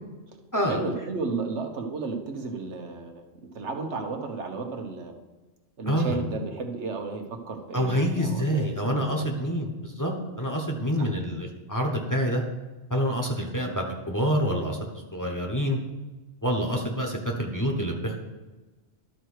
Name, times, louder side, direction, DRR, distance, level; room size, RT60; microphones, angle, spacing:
voice 1, 0.7-3.2 3.5-5.1 5.8-9.3 11.0-11.1 13.6-13.8, right 4 dB, 85° right, 4 dB, 1.4 m, -33 dB
voice 2, 5.9-6.2 7.7-10.1 10.4-12.4 12.9-14.8 15.1-15.8 16.4-18.2, equal, 15° left, 1 dB, 1.1 m, -27 dB
12.0 x 4.6 x 6.5 m, 1.2 s
omnidirectional pair, 1.1 m